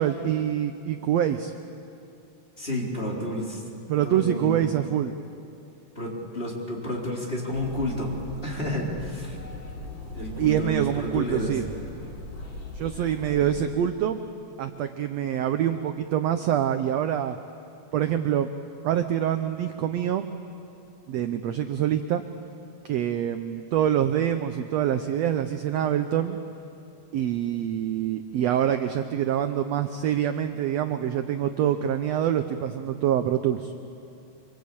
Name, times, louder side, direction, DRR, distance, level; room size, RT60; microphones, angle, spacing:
voice 1, 0.0-1.5 3.9-5.1 10.4-11.7 12.7-14.2 14.6-17.4 17.9-18.5 18.8-20.3 21.1-22.2 22.8-26.4 27.1-33.7, right 10 dB, 70° right, 8 dB, 1.7 m, -25 dB
voice 2, 2.6-3.6 4.0-4.6 6.0-8.1 8.4-9.4 10.1-11.5 13.4-13.5, equal, 20° left, -3 dB, 4.0 m, -31 dB
sound 1, 7.5-13.6, left 2 dB, 75° left, 5.5 m, -39 dB
26.0 x 25.5 x 8.6 m, 2.7 s
omnidirectional pair, 3.6 m